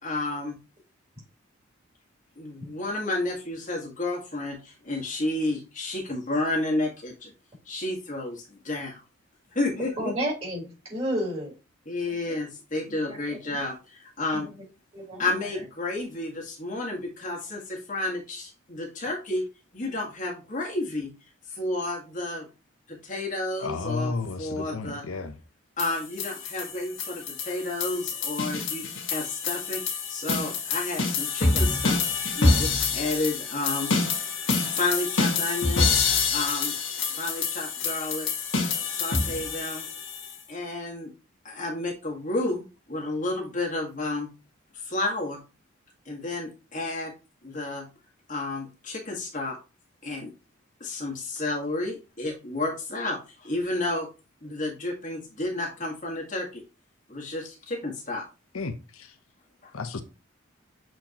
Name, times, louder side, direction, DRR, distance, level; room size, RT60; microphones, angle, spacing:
voice 1, 0.0-0.6 2.4-7.3 7.6-9.0 9.5-10.1 11.8-14.5 15.2-19.4 19.7-21.1 21.5-22.5 22.9-25.0 25.8-32.0 32.3-33.9 34.7-35.9 36.3-36.8 37.1-38.3 38.9-39.9 40.5-41.1 41.4-44.3 44.7-45.4 46.0-47.1 47.4-47.9 48.3-49.6 50.0-50.3 50.8-54.1 54.4-56.6 57.1-58.2 59.6-59.7, left 2 dB, 40° left, 1.6 m, -31 dB
voice 2, 10.0-11.5 12.3-12.4 12.9-13.6 14.3-14.4 14.9-15.2, equal, 30° right, 3.8 m, -32 dB
voice 3, 23.6-25.4 31.9-32.2 58.5-59.2 59.7-60.0, left 3 dB, 85° left, 0.9 m, -33 dB
sound 1, 25.8-40.3, left 4 dB, 65° left, 1.8 m, -27 dB
7.6 x 4.4 x 2.9 m
head